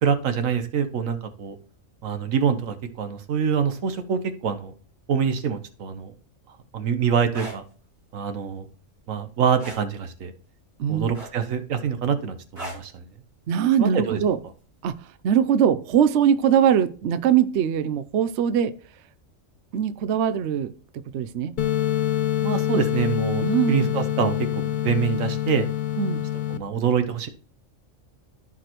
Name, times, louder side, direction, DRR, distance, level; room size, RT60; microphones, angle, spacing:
voice 1, 0.0-1.5 2.0-4.7 5.1-6.1 6.7-7.6 8.1-8.7 9.1-10.3 10.9-13.1 13.8-14.2 22.4-25.7 26.5-27.3, right 7 dB, 85° right, 8 dB, 1.3 m, -25 dB
sound 1, 7.3-7.6 9.6-9.9 11.1-11.6 12.6-12.9 14.3-14.5, right 1 dB, 50° right, 3.6 m, -37 dB
voice 2, 13.5-14.4 14.8-18.7 19.7-21.5 23.4-24.0 26.0-26.2, right 8 dB, 65° right, 12 dB, 0.9 m, -22 dB
sound 2, 21.6-26.6, left 12 dB, 60° left, 0.5 m, -25 dB
14.5 x 5.0 x 3.0 m, 0.40 s
omnidirectional pair, 1.3 m